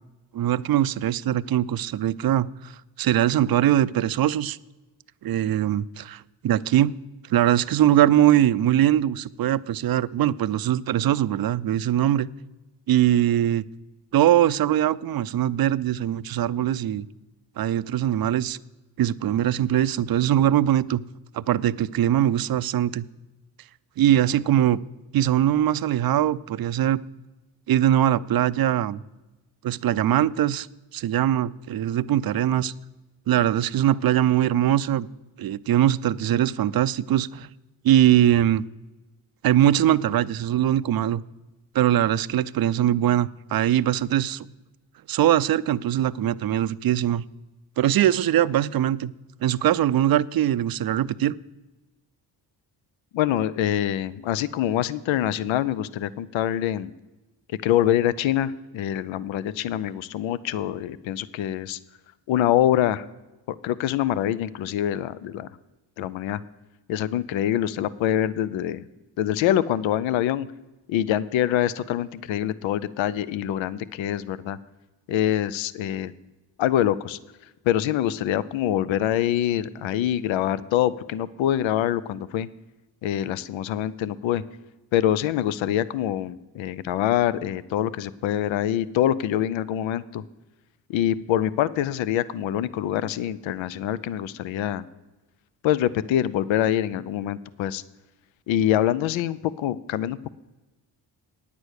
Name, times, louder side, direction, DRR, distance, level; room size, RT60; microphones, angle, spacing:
voice 1, 0.3-2.7 3.0-4.6 5.2-6.9 7.3-12.3 12.9-13.6 14.1-17.1 17.6-18.6 19.0-21.0 21.3-23.1 24.0-24.8 25.1-27.0 27.7-29.0 29.6-30.7 30.9-32.7 33.3-35.1 35.4-37.5 37.8-38.6 39.4-41.2 41.7-44.5 45.1-47.2 47.8-49.1 49.4-51.3, right 11 dB, 55° right, 17 dB, 0.5 m, -21 dB
voice 2, 53.1-56.9 57.6-61.8 62.3-63.1 63.5-65.5 66.0-66.4 66.9-68.8 69.2-70.5 70.9-74.6 75.1-76.1 76.6-77.2 77.7-82.5 83.0-84.4 84.9-90.2 90.9-94.8 95.6-97.8 98.5-100.3, left 11 dB, 85° left, 18 dB, 0.5 m, -25 dB
9.8 x 8.3 x 6.4 m, 1.1 s
cardioid pair, 60°, 45 cm